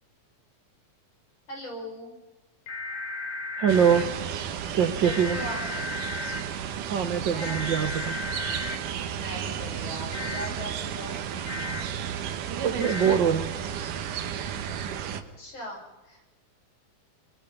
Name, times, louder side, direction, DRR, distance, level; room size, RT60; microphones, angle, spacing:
voice 1, 1.5-2.2 5.0-5.7 7.1-7.7 9.0-11.2 15.2-16.2, equal, 40° left, 1 dB, 5.8 m, -40 dB
sound 1, 2.7-4.0 5.0-6.4 7.4-8.8 10.1-10.5 11.5-11.8 12.8-13.2, left 3 dB, 55° left, 4.5 m, -35 dB
voice 2, 3.6-4.0 4.7-5.4 6.9-8.2 12.6-13.5, right 8 dB, 55° right, 7 dB, 1.4 m, -23 dB
sound 2, 3.7-15.2, right 8 dB, 85° right, 2.9 m, -33 dB
24.5 x 23.0 x 5.4 m, 1.1 s
omnidirectional pair, 3.6 m